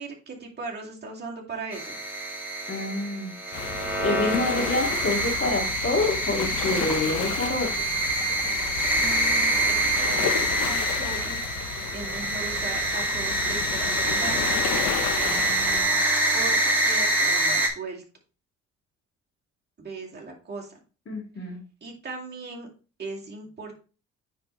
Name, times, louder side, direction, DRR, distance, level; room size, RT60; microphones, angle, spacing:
voice 1, 0.0-2.0 9.0-11.4 11.9-14.4 16.3-18.0 19.8-20.7 21.8-22.7 23.0-23.7, right 3 dB, 35° right, -2 dB, 2.4 m, -38 dB
sound 1, 1.7-17.7, right 1 dB, 5° right, 2.3 m, -26 dB
voice 2, 2.7-3.4 4.0-7.7 15.2-16.0 21.1-21.6, left 2 dB, 45° left, 1 dB, 2.3 m, -28 dB
sound 2, 3.5-15.8, left 8 dB, 75° left, 1.0 m, -33 dB
9.7 x 4.1 x 3.2 m, 0.35 s
cardioid pair, 90°, 30 cm